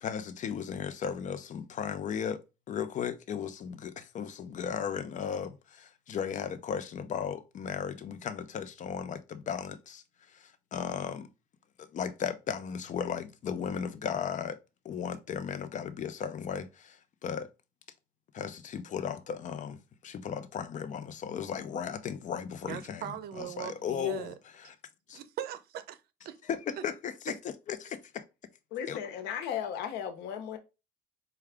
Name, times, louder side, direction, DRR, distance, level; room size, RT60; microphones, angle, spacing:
voice 1, 0.0-2.4 2.7-11.3 11.8-14.6 14.8-17.5 18.3-23.1 23.4-24.3 24.6-24.7 25.1-25.2 26.5-27.4 27.7-28.2 28.9-29.0, left 7 dB, 45° left, 0.6 m, -36 dB
voice 2, 22.6-24.3 25.1-26.4 26.8-26.9, right 10 dB, 65° right, 0.6 m, -40 dB
voice 3, 28.7-30.6, left 9 dB, 85° left, 0.8 m, -35 dB
4.7 x 2.3 x 3.4 m
cardioid pair, 110°, 17 cm